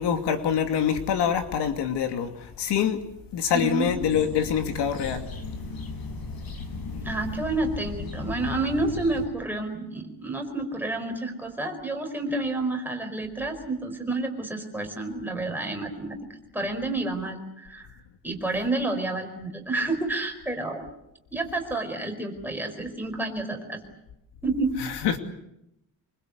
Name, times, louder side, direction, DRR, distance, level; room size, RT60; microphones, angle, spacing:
voice 1, 0.0-3.0 3.3-5.3 24.8-25.2, left 8 dB, 80° left, 2.7 m, -25 dB
voice 2, 3.5-4.0 7.0-16.2 16.5-17.9 18.2-20.8 21.3-23.8 24.4-24.7, right 2 dB, 5° right, 4.7 m, -29 dB
sound 1, 3.8-9.3, left 3 dB, 60° left, 6.6 m, -36 dB
26.0 x 24.5 x 8.2 m
cardioid pair, 175°, 41 cm